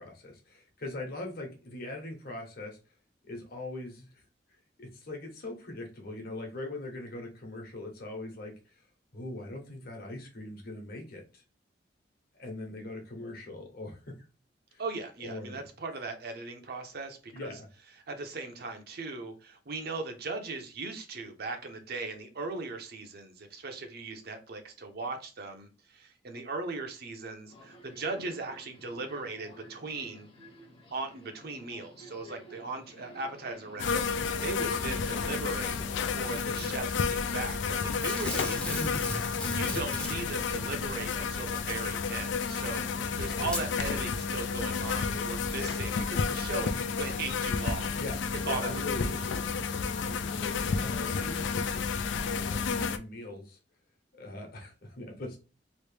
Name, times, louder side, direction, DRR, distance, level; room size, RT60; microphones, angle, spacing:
voice 1, 0.0-2.8 3.2-4.2 4.8-8.8 9.1-11.4 12.3-14.0 14.7-14.8 15.2-15.6 17.3-17.7 36.4-36.7 43.0-43.1 43.4-43.5 48.0-48.2 48.4-49.4 50.0-53.6 54.1-55.4, left 2 dB, 55° left, 1 dB, 1.1 m, -41 dB
voice 2, 14.8-17.6 18.1-30.3 30.9-48.0 48.4-49.2, right 3 dB, 60° right, 6 dB, 0.7 m, -38 dB
Subway metro underground, 27.5-36.5, equal, 30° left, 0.8 m, -51 dB
sound 1, 33.8-53.0, left 5 dB, 85° left, 0.4 m, -31 dB
Packing tape duct tape / Tearing, 36.3-36.8 38.0-40.5 41.7-41.8 42.7-42.8 43.4-43.7 44.3-44.4, left 1 dB, 5° left, 0.6 m, -36 dB
3.1 x 2.6 x 3.3 m, 0.32 s
head